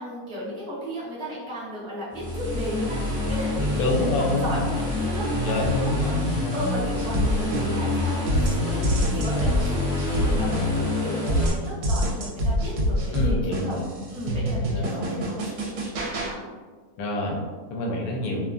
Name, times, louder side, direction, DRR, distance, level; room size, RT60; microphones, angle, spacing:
voice 1, 0.0-3.9 4.2-6.2 6.5-13.8 14.1-16.4, equal, 5° left, -10 dB, 0.4 m, -34 dB
sound 1, 2.1-11.5, left 1 dB, 50° right, 1.0 m, -27 dB
voice 2, 3.7-4.8 5.4-6.5 13.1-14.1 14.7-15.2 17.0-18.5, left 2 dB, 75° left, -1 dB, 1.1 m, -27 dB
sound 2, 7.0-7.9 8.3-10.9 11.3-16.3, equal, 80° right, 1.1 m, -26 dB
2.8 x 2.2 x 2.4 m, 1.4 s
omnidirectional pair, 1.7 m